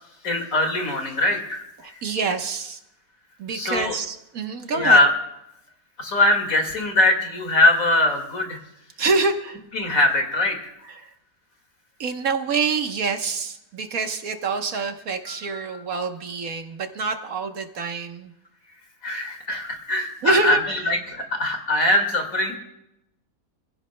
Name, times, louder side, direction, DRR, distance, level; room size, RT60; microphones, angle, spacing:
voice 1, 0.2-2.0 3.5-3.9 4.7-5.1 6.0-8.6 9.7-10.7 15.3-15.4 19.0-22.6, left 2 dB, 60° left, 3 dB, 2.5 m, -21 dB
voice 2, 1.8-2.8 3.4-5.0 9.0-9.6 10.8-11.1 12.0-18.3 20.2-20.9, right 4 dB, 65° right, 5 dB, 1.6 m, -26 dB
27.5 x 16.5 x 2.2 m, 0.88 s
omnidirectional pair, 1.6 m